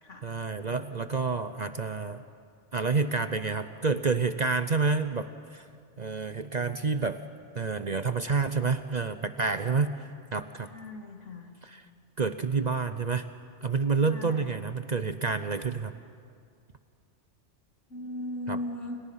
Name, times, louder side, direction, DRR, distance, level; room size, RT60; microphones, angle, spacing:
voice 1, 0.2-2.2 2.7-5.7 6.0-7.2 7.5-10.7 11.6-11.8 12.2-13.3 13.6-15.9 18.5-18.6, right 4 dB, 40° right, 10 dB, 0.7 m, -29 dB
voice 2, 10.7-11.5 14.0-14.5 17.9-19.0, left 1 dB, 75° left, 3 dB, 2.9 m, -37 dB
29.0 x 29.0 x 5.7 m, 2.2 s
omnidirectional pair, 1.3 m